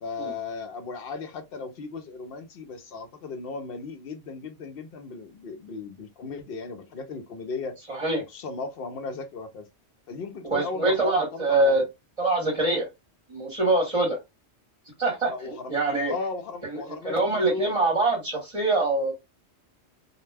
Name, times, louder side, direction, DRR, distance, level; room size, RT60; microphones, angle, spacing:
voice 1, 0.0-7.8 8.3-9.7 10.1-11.9 15.3-15.8 16.1-17.7, left 4 dB, 65° left, 0.8 m, -36 dB
voice 2, 7.9-8.2 10.5-11.8 12.2-12.9 13.3-14.2 15.0-15.3 15.7-16.1 16.7-19.1, right 2 dB, 35° right, 0.9 m, -24 dB
2.2 x 2.2 x 3.2 m
omnidirectional pair, 1.1 m